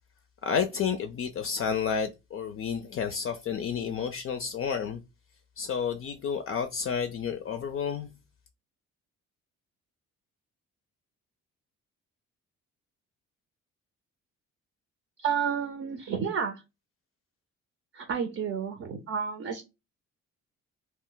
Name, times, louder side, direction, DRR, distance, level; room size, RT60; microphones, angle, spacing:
voice 1, 0.4-5.0 5.6-8.1, left 7 dB, 45° left, 0.4 m, -30 dB
voice 2, 15.2-16.6 17.9-19.6, right 7 dB, 45° right, 0.6 m, -31 dB
2.1 x 2.1 x 3.8 m
cardioid pair, 90°, 30 cm